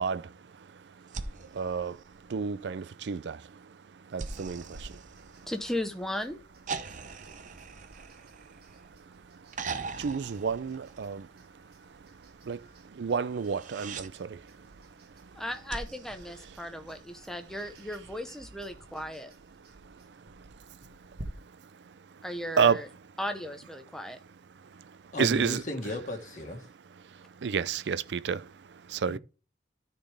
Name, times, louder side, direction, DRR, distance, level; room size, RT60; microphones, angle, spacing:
voice 1, 0.0-5.5 6.8-7.5 8.0-8.1 8.5-14.8 15.2-15.3 19.8-21.3 21.7-22.2 22.6-22.8 24.6-25.6 27.0-29.2, right 6 dB, 80° right, 0.4 m, -33 dB
sound 1, 1.1-2.7 4.2-5.9 6.7-8.9 9.5-11.4 13.3-14.1 15.7-17.2 18.7-18.8, right 4 dB, 45° right, 0.7 m, -41 dB
sound 2, 4.6-21.2, right 1 dB, 60° right, 1.6 m, -54 dB
voice 2, 5.5-6.4 15.3-19.3 22.2-22.9 23.2-24.2, left 1 dB, 5° left, 0.7 m, -36 dB
voice 3, 25.1-26.7 29.1-29.2, left 1 dB, 45° left, 1.5 m, -35 dB
13.0 x 4.4 x 3.3 m
head